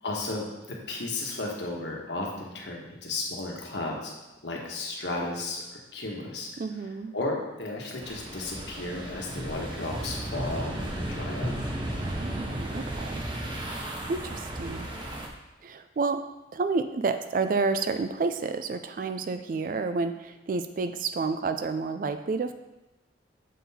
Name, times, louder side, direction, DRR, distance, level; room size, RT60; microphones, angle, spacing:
voice 1, 0.0-4.1 4.4-6.5 7.1-11.5, left 2 dB, 65° left, -1 dB, 1.2 m, -34 dB
voice 2, 6.6-7.1 12.0-13.2 14.1-14.9 15.6-16.2 16.5-22.5, right 4 dB, 45° right, 9 dB, 0.3 m, -30 dB
sound 1, 8.0-15.3, right 1 dB, 25° right, 0.7 m, -34 dB
7.2 x 3.9 x 4.2 m, 1.0 s
head